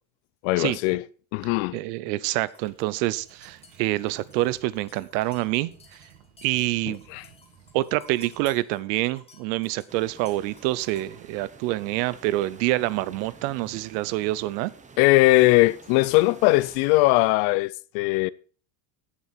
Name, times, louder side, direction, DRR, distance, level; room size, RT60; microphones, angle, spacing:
voice 1, 0.4-1.1 1.3-1.8 6.9-7.3 15.0-18.3, left 20 dB, 70° left, 0.7 m, -20 dB
voice 2, 1.7-5.7 6.4-7.0 7.7-14.7, right 17 dB, 85° right, 0.9 m, -26 dB
sound 1, 2.4-11.2, left 3 dB, 10° left, 1.9 m, -55 dB
sound 2, 2.6-8.5, right 8 dB, 60° right, 3.0 m, -56 dB
sound 3, 9.9-17.3, right 5 dB, 15° right, 1.0 m, -49 dB
16.5 x 7.2 x 4.5 m
cardioid pair, 145°, 50 cm